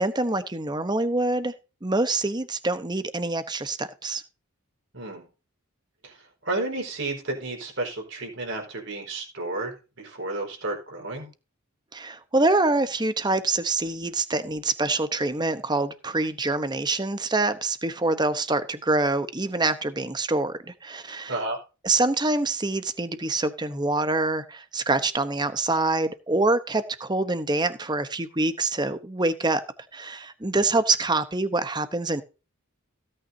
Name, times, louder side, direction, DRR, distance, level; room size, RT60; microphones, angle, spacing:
voice 1, 0.0-1.5 1.8-4.2 11.9-21.4 21.8-29.6 29.9-32.2, right 2 dB, 20° right, 11 dB, 0.9 m, -25 dB
voice 2, 4.9-5.2 6.0-6.1 6.4-11.3 21.3-21.6, right 2 dB, 55° right, 2 dB, 4.5 m, -32 dB
16.5 x 8.9 x 2.7 m, 0.31 s
head